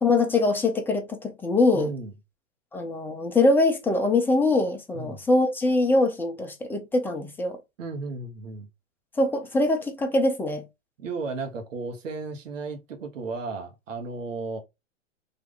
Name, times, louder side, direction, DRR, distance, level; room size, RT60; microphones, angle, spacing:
voice 1, 0.0-1.9 2.7-7.6 9.2-10.6, left 2 dB, 5° left, 0.6 m, -23 dB
voice 2, 1.7-2.1 4.9-5.3 7.8-8.7 11.0-14.6, right 3 dB, 70° right, 1.3 m, -34 dB
3.7 x 2.7 x 3.8 m
hypercardioid pair, 115°, 39 cm